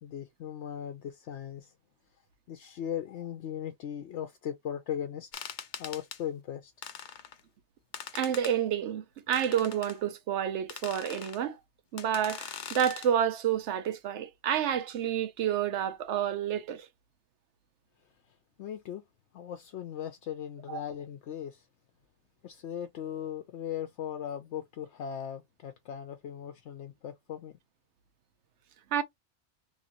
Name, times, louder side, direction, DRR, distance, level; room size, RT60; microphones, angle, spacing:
voice 1, 0.0-1.7 2.5-5.5 5.8-6.7 18.6-19.0 19.3-21.6 22.4-27.6, left 9 dB, 80° left, 0.9 m, -38 dB
sound 1, 5.3-6.2 6.8-7.4 7.9-8.6 9.3-10.0 10.7-11.4 12.0-13.1, left 7 dB, 55° left, 0.6 m, -42 dB
voice 2, 8.1-11.6 11.9-16.9 20.7-20.8 28.9-29.0, right 9 dB, 85° right, 0.9 m, -29 dB
3.0 x 2.5 x 2.8 m
omnidirectional pair, 1.2 m